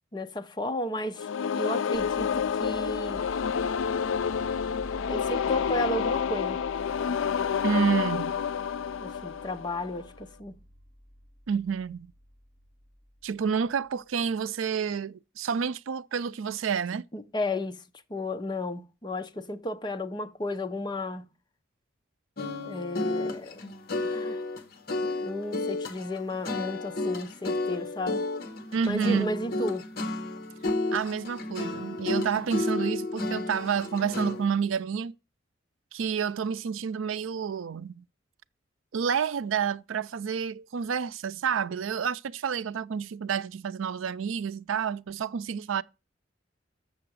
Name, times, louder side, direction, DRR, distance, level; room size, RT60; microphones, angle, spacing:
voice 1, 0.1-1.3 1.6-3.3 5.1-6.6 9.0-10.6 17.1-17.8 18.1-21.3 22.6-23.7 24.0-24.4 25.0-28.5 28.8-29.9, left 1 dB, 20° left, 0.7 m, -33 dB
sound 1, 1.2-10.1, left 7 dB, 75° left, 0.4 m, -29 dB
sound 2, 1.9-13.9, equal, 10° right, 6.6 m, -48 dB
voice 2, 7.6-8.4 11.5-12.1 13.2-17.1 28.7-29.3 30.9-35.1 35.9-38.0 38.9-45.8, right 6 dB, 85° right, 0.4 m, -29 dB
sound 3, 22.4-34.5, left 2 dB, 50° left, 1.0 m, -32 dB
6.9 x 6.7 x 6.3 m
head